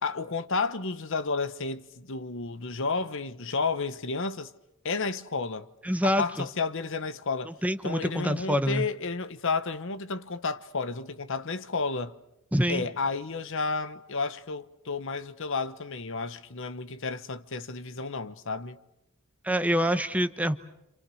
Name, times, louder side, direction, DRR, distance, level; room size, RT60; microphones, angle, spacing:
voice 1, 0.0-4.5 4.8-5.7 6.0-7.5 7.8-12.1 12.7-18.8, left 4 dB, 60° left, 1.1 m, -31 dB
voice 2, 5.8-6.4 7.5-8.9 12.5-12.9 19.4-20.6, equal, 5° right, 0.9 m, -26 dB
28.0 x 28.0 x 6.4 m
head